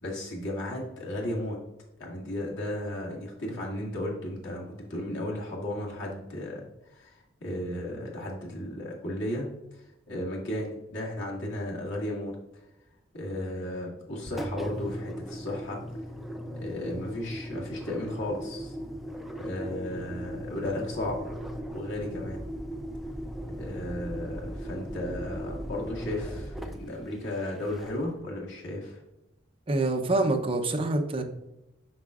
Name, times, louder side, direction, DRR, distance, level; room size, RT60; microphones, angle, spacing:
voice 1, 0.0-1.6 2.0-9.8 10.1-12.4 13.1-15.8 16.6-18.7 19.4-21.2 21.7-22.4 23.6-29.0, left 1 dB, 90° left, -2 dB, 2.0 m, -34 dB
Engine, 14.2-28.2, equal, ahead, 0.4 m, -38 dB
voice 2, 29.7-31.2, right 2 dB, 30° right, 3 dB, 0.7 m, -26 dB
7.4 x 5.6 x 2.4 m, 0.94 s
head